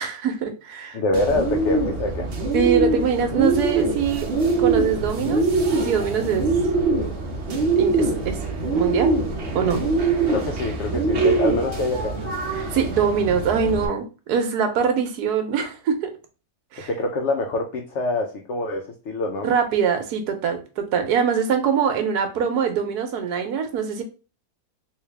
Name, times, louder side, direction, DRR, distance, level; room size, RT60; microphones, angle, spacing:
voice 1, 0.0-1.0 2.5-4.3 4.6-5.5 5.8-6.5 7.7-8.4 8.7-9.2 9.5-9.9 12.5-16.2 16.7-16.9 19.4-24.0, right 7 dB, 80° right, 7 dB, 1.2 m, -23 dB
voice 2, 0.9-2.3 9.7-9.8 10.3-12.2 16.8-19.5, left 2 dB, 65° left, 2 dB, 0.7 m, -25 dB
Bird, 1.1-13.9, right 3 dB, 55° right, 0.9 m, -23 dB
3.2 x 2.8 x 3.3 m, 0.33 s
omnidirectional pair, 1.7 m